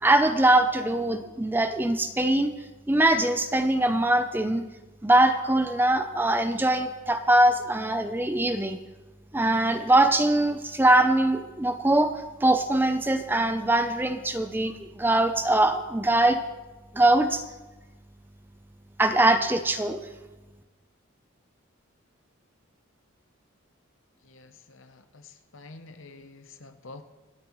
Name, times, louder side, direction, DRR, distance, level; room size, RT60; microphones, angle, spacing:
voice 1, 0.0-2.5 2.9-4.6 5.0-8.8 9.3-16.4 16.9-17.4 19.0-20.0, right 1 dB, 10° right, 8 dB, 0.5 m, -22 dB
voice 2, 24.3-27.0, left 3 dB, 65° left, 9 dB, 0.8 m, -48 dB
25.5 x 9.3 x 3.1 m, 1.2 s
head